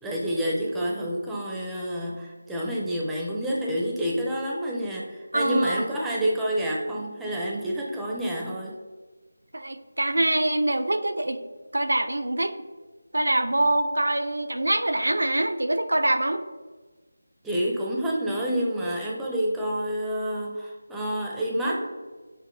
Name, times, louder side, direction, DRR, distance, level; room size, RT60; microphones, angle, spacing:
voice 1, 0.0-8.7 17.4-21.9, equal, 5° right, -4 dB, 0.4 m, -28 dB
voice 2, 5.3-5.8 9.5-11.4 11.7-12.5 13.1-16.4, right 1 dB, 80° right, 8 dB, 0.4 m, -24 dB
5.6 x 2.6 x 2.5 m, 1.3 s
figure-of-eight pair, 165°, 0 cm